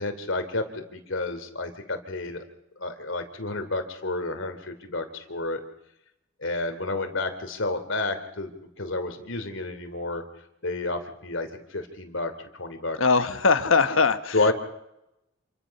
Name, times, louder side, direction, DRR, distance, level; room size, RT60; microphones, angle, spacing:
voice 1, 0.0-2.4 2.8-5.6 6.4-10.2 10.6-12.3 12.6-13.0 14.3-14.5, left 2 dB, 70° left, 7 dB, 2.9 m, -30 dB
voice 2, 13.0-14.4, left 4 dB, 85° left, 10 dB, 1.4 m, -21 dB
28.0 x 23.5 x 5.9 m, 0.85 s
head